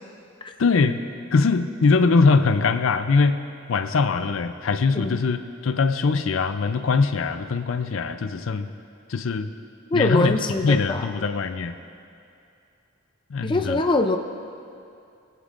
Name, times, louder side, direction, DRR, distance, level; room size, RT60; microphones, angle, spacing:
voice 1, 0.6-1.0 1.3-3.4 3.7-8.7 9.1-9.5 9.9-10.4 10.6-11.8 13.3-13.8, left 4 dB, 75° left, 9 dB, 0.5 m, -22 dB
voice 2, 9.9-11.1 13.4-14.2, left 2 dB, 25° left, 5 dB, 0.5 m, -23 dB
20.0 x 8.1 x 2.5 m, 2.6 s
head